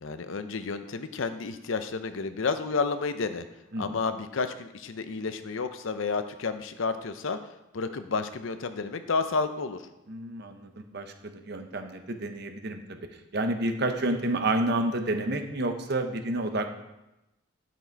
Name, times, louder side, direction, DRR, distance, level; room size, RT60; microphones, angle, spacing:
voice 1, 0.0-3.4 3.8-7.4 7.7-9.8, left 4 dB, 70° left, 10 dB, 0.6 m, -31 dB
voice 2, 10.1-13.0 13.3-16.7, right 2 dB, 50° right, 6 dB, 0.9 m, -30 dB
10.0 x 6.1 x 4.5 m, 0.94 s
head